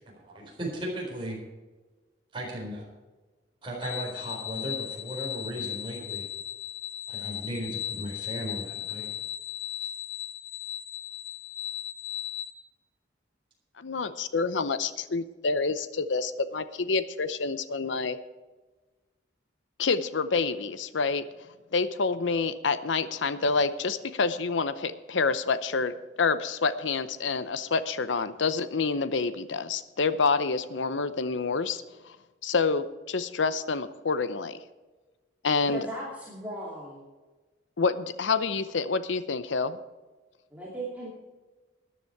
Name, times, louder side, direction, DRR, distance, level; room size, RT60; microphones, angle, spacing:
voice 1, 0.1-1.4 2.3-2.8 3.6-6.2 7.1-9.1, right 1 dB, 25° right, -2 dB, 4.1 m, -36 dB
sound 1, 3.8-12.5, left 10 dB, 40° left, 0.9 m, -36 dB
voice 2, 13.8-18.2 19.8-21.3 21.7-31.8 32.4-34.6 35.4-35.9 37.8-39.8, left 4 dB, 80° left, 13 dB, 0.7 m, -28 dB
voice 3, 35.6-37.0 40.5-41.1, right 1 dB, 10° right, -6 dB, 2.7 m, -37 dB
13.5 x 10.5 x 4.7 m, 1.2 s
head